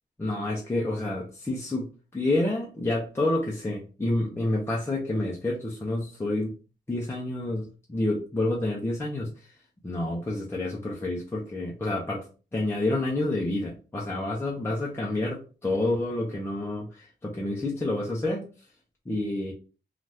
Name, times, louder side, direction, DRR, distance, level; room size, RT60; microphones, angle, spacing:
voice 1, 0.2-1.9 2.1-6.5 6.9-9.6 9.8-12.3 12.5-18.5 19.1-19.5, left 2 dB, 15° left, -4 dB, 0.6 m, -29 dB
2.7 x 2.4 x 3.3 m, 0.34 s
wide cardioid pair, 130°, 19 cm